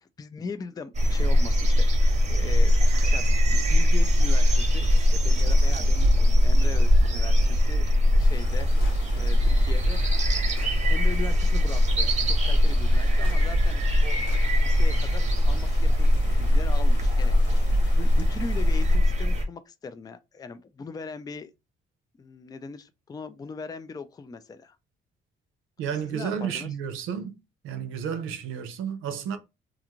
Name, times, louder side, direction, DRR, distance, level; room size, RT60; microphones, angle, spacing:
voice 1, 0.0-1.9 2.3-4.9 5.1-7.9 8.1-8.7 9.1-10.1 10.5-14.2 14.6-17.6 17.9-21.5 22.2-24.8 25.9-26.7, left 4 dB, 20° left, 0.3 m, -40 dB
sound 1, 0.9-19.4, left 1 dB, 35° right, 0.7 m, -21 dB
Stream, 8.2-19.0, left 4 dB, 60° left, 1.1 m, -48 dB
Gunshot gunfire, 8.8-9.0 9.9-10.0 10.6-10.8 13.2-13.5 14.3-14.5, left 6 dB, 85° left, 0.5 m, -45 dB
voice 2, 25.8-27.3 27.6-29.4, right 8 dB, 90° right, 0.6 m, -31 dB
2.5 x 2.4 x 2.9 m
cardioid pair, 90°, 20 cm